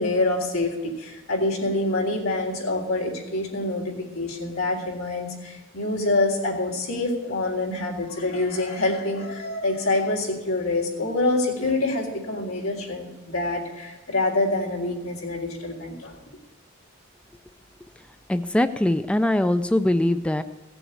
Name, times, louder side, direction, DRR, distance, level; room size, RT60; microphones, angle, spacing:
voice 1, 0.0-16.2, left 2 dB, 90° left, -1 dB, 3.6 m, -26 dB
voice 2, 18.3-20.4, left 1 dB, 5° left, 10 dB, 0.4 m, -22 dB
16.5 x 7.0 x 8.6 m, 1.2 s
head